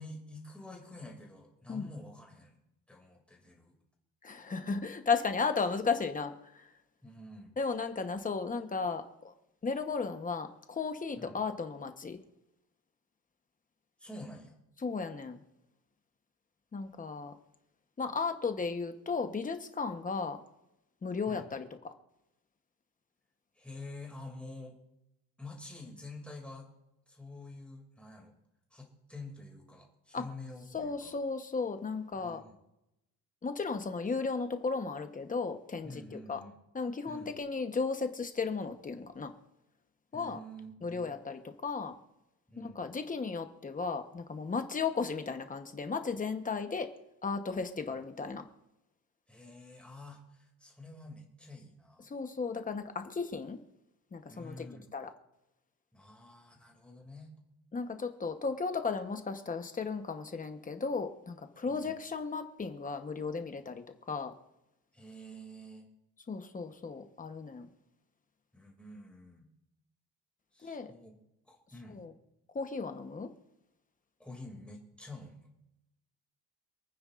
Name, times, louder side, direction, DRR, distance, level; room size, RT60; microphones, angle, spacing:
voice 1, 0.0-2.6 2.9-3.8 7.0-7.6 11.2-11.4 14.0-14.6 21.2-21.5 23.6-24.8 25.4-26.7 27.1-28.3 28.7-31.2 32.2-32.4 35.8-36.6 37.0-37.3 40.1-41.1 42.5-42.9 49.3-52.0 54.3-54.9 55.9-57.3 61.7-61.9 64.9-65.8 68.5-69.5 70.5-71.2 71.4-72.0 74.2-75.5, left 2 dB, 5° left, -1 dB, 2.4 m, -48 dB
voice 2, 4.2-6.7 7.6-9.3 9.6-12.2 14.8-15.4 16.7-17.3 18.0-20.4 21.0-21.9 30.1-30.2 30.7-32.4 33.4-36.4 36.7-39.3 40.1-40.4 40.8-42.0 42.6-46.9 47.2-48.4 52.0-53.6 54.1-54.7 54.9-55.1 57.7-64.3 66.3-67.7 70.6-70.9 71.9-72.1 72.5-73.3, left 4 dB, 20° left, 7 dB, 0.9 m, -35 dB
28.0 x 9.5 x 2.5 m, 0.88 s
cardioid pair, 170°, 37 cm